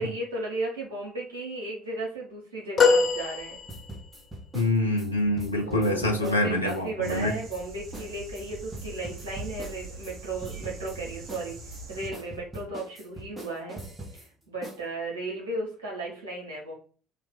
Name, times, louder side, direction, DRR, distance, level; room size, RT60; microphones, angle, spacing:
voice 1, 0.0-3.6 5.6-11.6 11.9-13.8 14.1-16.7, right 2 dB, 75° right, -3 dB, 1.5 m, -35 dB
sound 1, 2.8-4.2 6.6-6.8 8.1-8.2, left 4 dB, 40° left, 0.7 m, -23 dB
sound 2, 3.7-6.8 7.1-7.6 7.9-8.1 8.3-10.1 10.4-11.0 11.3-14.3 14.6-14.8, right 2 dB, 15° right, 1.2 m, -42 dB
voice 2, 4.5-7.3, left 1 dB, 85° left, 1 dB, 0.5 m, -25 dB
sound 3, 7.0-12.1, right 3 dB, 50° right, 0.9 m, -43 dB
3.1 x 2.5 x 3.8 m, 0.40 s
figure-of-eight pair, 55°, 0 cm